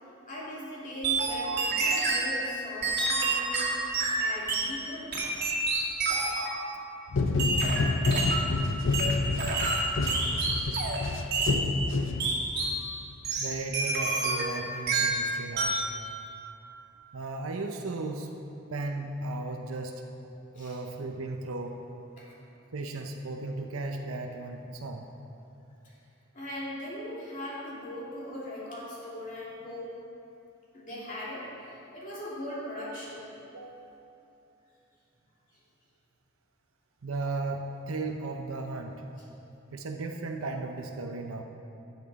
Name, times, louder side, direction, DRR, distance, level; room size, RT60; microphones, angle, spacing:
voice 1, 0.3-5.2 20.5-20.8 22.2-22.3 25.8-25.9 26.3-29.9 30.7-33.3 35.5-35.6, left 1 dB, 40° left, -7 dB, 2.6 m, -39 dB
sound 1, 1.0-2.3 2.8-4.7 5.1-6.5 7.4-8.5 8.9-11.0 11.3-11.6 12.2-12.8 13.2-14.6 14.9-15.2 15.6-15.9, right 3 dB, 50° right, 2.0 m, -28 dB
sound 2, 7.1-12.6, left 3 dB, 65° left, 0.6 m, -28 dB
voice 2, 13.4-15.8 17.1-18.4 18.7-20.0 20.5-21.8 22.7-25.1 33.5-34.0 37.0-39.0 39.7-41.4, right 2 dB, 80° right, 3 dB, 0.7 m, -35 dB
13.5 x 8.3 x 4.1 m, 2.8 s
head